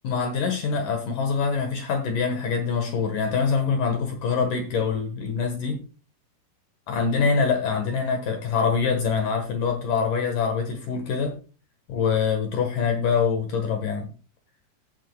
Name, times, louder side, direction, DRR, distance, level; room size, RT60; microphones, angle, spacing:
voice 1, 0.0-5.8 6.9-11.4 11.9-14.1, left 5 dB, 65° left, 4 dB, 2.7 m, -24 dB
16.5 x 7.4 x 2.3 m, 0.35 s
omnidirectional pair, 4.4 m